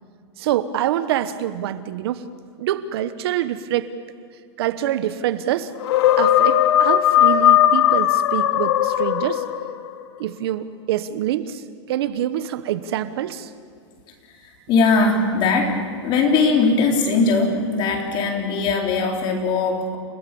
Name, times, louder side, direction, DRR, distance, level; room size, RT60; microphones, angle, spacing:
voice 1, 0.4-2.3 2.6-3.9 4.6-5.7 6.2-9.4 10.2-13.5, right 12 dB, 60° right, 13 dB, 1.2 m, -25 dB
sound 1, 5.8-9.9, left 11 dB, 65° left, 1.6 m, -17 dB
voice 2, 14.3-20.0, left 4 dB, 30° left, 2 dB, 4.1 m, -20 dB
29.5 x 17.5 x 7.1 m, 2.2 s
supercardioid pair, 150°, 15 cm